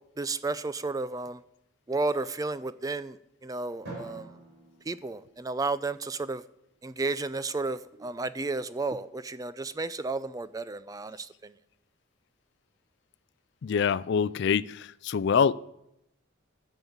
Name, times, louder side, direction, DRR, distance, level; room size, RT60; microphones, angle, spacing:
voice 1, 0.2-1.4 1.9-3.2 3.4-4.3 4.9-6.4 6.8-11.5, right 3 dB, 15° right, 0.4 m, -32 dB
Drum, 3.8-6.1, right 2 dB, 55° right, 5.5 m, -46 dB
voice 2, 13.6-15.5, left 6 dB, 55° left, 0.3 m, -25 dB
11.5 x 7.1 x 7.3 m
head